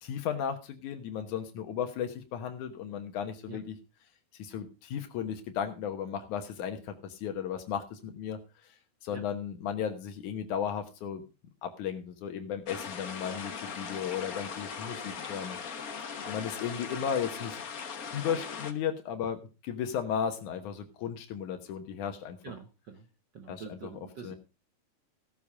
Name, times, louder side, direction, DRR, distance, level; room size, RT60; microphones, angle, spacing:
voice 1, 0.0-3.8 4.3-8.4 9.0-11.2 11.6-15.6 15.8-15.9 16.3-17.6 18.1-22.4 23.5-23.9 24.2-24.4, left 8 dB, 90° left, 5 dB, 2.7 m, -35 dB
sound 1, 12.7-18.7, left 6 dB, 55° left, 0.9 m, -39 dB
voice 2, 22.4-23.1 23.3-24.3, right 6 dB, 75° right, 7 dB, 1.0 m, -45 dB
16.0 x 7.3 x 4.8 m, 0.31 s
omnidirectional pair, 3.4 m